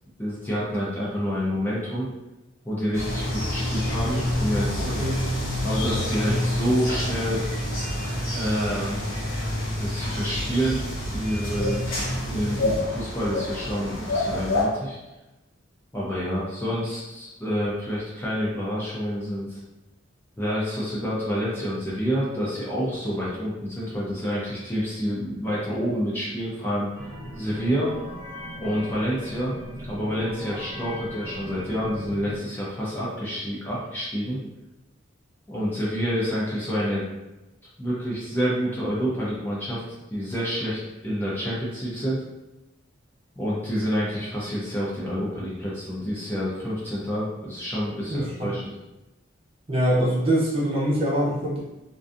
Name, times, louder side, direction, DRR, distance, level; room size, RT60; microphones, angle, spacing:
voice 1, 0.2-2.1 2.6-4.9 5.6-7.4 8.3-9.1 9.7-10.8 11.1-11.8 12.3-15.0 15.9-19.6 20.4-26.9 27.4-27.9 28.6-29.6 29.9-34.4 35.5-37.0 37.8-39.8 40.1-42.2 43.4-48.7, equal, 10° left, -8 dB, 0.5 m, -28 dB
sound 1, 2.9-14.6, left 1 dB, 90° left, 0.9 m, -27 dB
voice 2, 4.8-5.2 48.1-48.5 49.7-51.6, right 1 dB, 30° right, -6 dB, 0.6 m, -24 dB
sound 2, 26.9-32.4, left 1 dB, 30° left, 0.9 m, -39 dB
2.5 x 2.3 x 2.5 m, 1.0 s
head